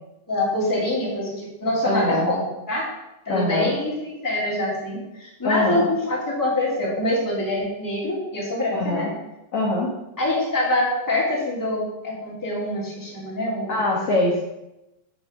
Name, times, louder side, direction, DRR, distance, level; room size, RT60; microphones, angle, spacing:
voice 1, 0.3-2.9 3.2-9.1 10.2-13.7 14.0-14.2, left 1 dB, 5° left, -6 dB, 2.4 m, -25 dB
voice 2, 1.8-2.3 3.3-3.7 5.4-5.9 8.7-9.1 9.5-9.9 13.7-14.4, left 2 dB, 50° left, -6 dB, 1.9 m, -23 dB
9.5 x 4.7 x 6.7 m, 0.92 s
omnidirectional pair, 5.0 m